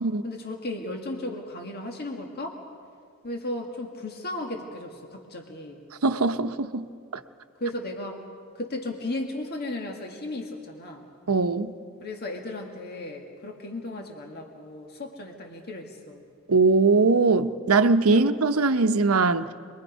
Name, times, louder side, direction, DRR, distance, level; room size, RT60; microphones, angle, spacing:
voice 1, 0.2-2.6 3.2-5.9 7.6-8.2 8.6-11.1 12.0-16.2 18.1-18.2, left 1 dB, 50° left, 1.9 m, -35 dB
voice 2, 6.0-6.9 7.1-7.2 11.3-11.7 16.5-19.5, right 3 dB, 85° right, 0.8 m, -21 dB
26.5 x 22.0 x 5.2 m
head